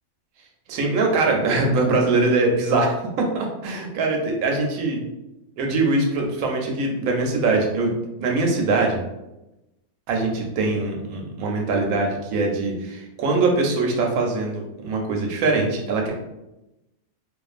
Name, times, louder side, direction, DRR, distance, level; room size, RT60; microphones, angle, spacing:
voice 1, 0.7-5.0 5.6-7.9 8.2-9.0 10.1-16.1, right 3 dB, 70° right, 1 dB, 0.9 m, -22 dB
2.4 x 2.4 x 2.4 m, 0.94 s
omnidirectional pair, 1.6 m